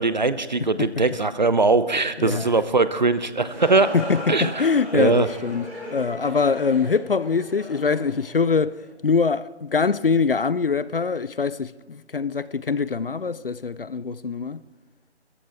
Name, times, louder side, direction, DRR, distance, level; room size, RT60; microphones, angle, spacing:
voice 1, 0.0-3.9 4.3-4.6 4.9-5.3, right 3 dB, 40° right, 0.6 m, -21 dB
voice 2, 2.2-2.5 3.9-5.7 5.9-8.8 9.0-14.6, left 5 dB, 55° left, 0.5 m, -23 dB
sound 1, 3.1-8.9, equal, 5° right, 2.8 m, -37 dB
23.5 x 14.0 x 3.4 m
figure-of-eight pair, 160°, 34 cm